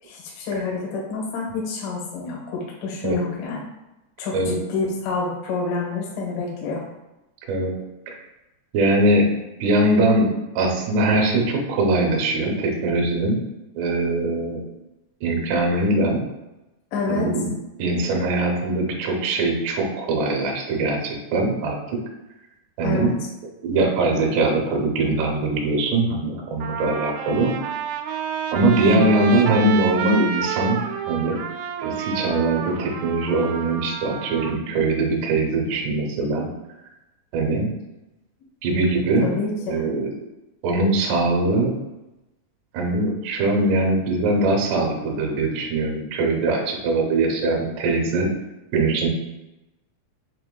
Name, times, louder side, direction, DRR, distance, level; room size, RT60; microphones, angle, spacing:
voice 1, 0.0-3.6 4.2-6.8 16.9-17.3 22.8-23.1 28.9-29.1 39.2-39.8, left 4 dB, 85° left, -2 dB, 1.8 m, -27 dB
voice 2, 8.7-9.3 9.6-10.3 10.6-13.4 13.8-14.6 15.2-16.2 17.1-17.5 17.8-21.8 22.8-23.1 23.6-27.5 28.5-30.8 31.1-31.4 31.8-36.5 37.3-37.7 38.6-39.3 39.7-40.1 40.6-41.8 42.7-48.3 48.7-49.1, right 2 dB, 75° right, -1 dB, 2.7 m, -21 dB
Trumpet, 25.9-26.0 26.6-34.5, right 8 dB, 90° right, 3.0 m, -29 dB
6.8 x 2.8 x 2.2 m, 0.99 s
omnidirectional pair, 5.4 m